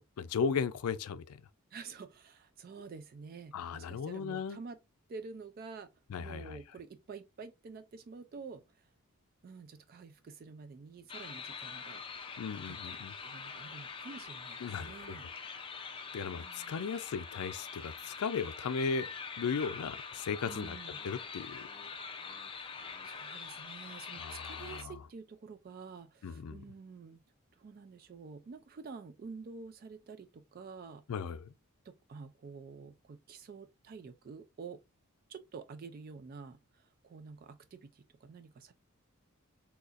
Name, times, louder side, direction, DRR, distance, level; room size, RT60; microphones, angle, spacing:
voice 1, 0.0-1.4 3.5-4.6 6.1-6.6 12.4-13.1 14.6-15.2 16.1-19.1 19.4-20.8 21.0-21.7 24.2-24.9 26.2-26.6 31.1-31.5, left 5 dB, 85° left, 0.4 m, -36 dB
voice 2, 1.7-4.8 5.1-5.9 6.2-8.9 9.4-12.0 12.6-15.3 16.4-16.8 20.4-21.0 22.5-27.2 27.5-31.0 31.8-34.8 35.3-38.7, right 5 dB, 40° right, 0.3 m, -49 dB
sound 1, 11.1-24.8, left 5 dB, 25° left, 0.4 m, -44 dB
4.0 x 2.8 x 2.4 m
head